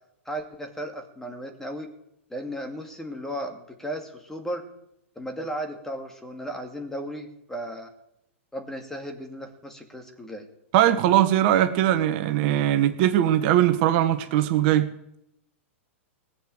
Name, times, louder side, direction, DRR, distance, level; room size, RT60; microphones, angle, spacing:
voice 1, 0.3-1.9 2.3-4.6 5.2-7.9 8.5-10.5, equal, 5° left, 4 dB, 2.4 m, -35 dB
voice 2, 10.7-14.9, right 12 dB, 50° right, 8 dB, 1.3 m, -20 dB
19.0 x 8.1 x 7.8 m, 0.81 s
hypercardioid pair, 120°, 7 cm